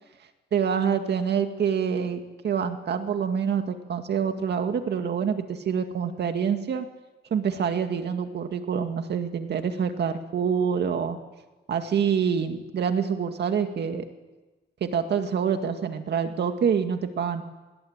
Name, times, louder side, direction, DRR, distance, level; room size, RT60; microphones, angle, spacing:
voice 1, 0.5-6.9 7.3-11.2 11.7-14.0 14.8-17.4, right 7 dB, 60° right, 6 dB, 2.1 m, -26 dB
25.0 x 22.0 x 8.9 m, 1.2 s
cardioid pair, 90°, 20 cm